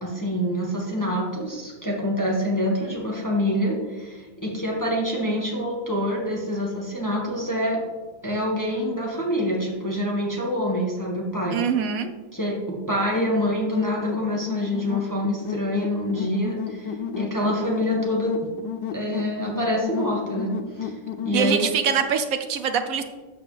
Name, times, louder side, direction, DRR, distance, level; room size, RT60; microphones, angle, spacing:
voice 1, 0.0-7.8 8.2-11.6 12.3-18.3 18.9-20.5 20.7-21.0 21.2-21.6, equal, 10° left, -3 dB, 1.5 m, -26 dB
voice 2, 11.5-12.1 21.3-23.0, right 7 dB, 70° right, 8 dB, 0.8 m, -24 dB
sound 1, 13.1-21.8, left 7 dB, 70° left, 1.2 m, -32 dB
12.5 x 6.3 x 3.4 m, 1.3 s
omnidirectional pair, 2.1 m